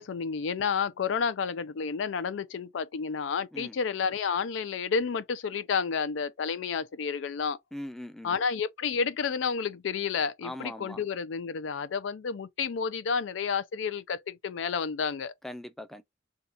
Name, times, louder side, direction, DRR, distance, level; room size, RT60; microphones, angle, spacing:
voice 1, 0.0-7.6 8.2-15.3, left 6 dB, 85° left, 0.4 m, -30 dB
voice 2, 7.7-8.4 10.4-11.0 15.4-16.0, left 1 dB, ahead, 0.4 m, -40 dB
2.8 x 2.3 x 3.7 m
head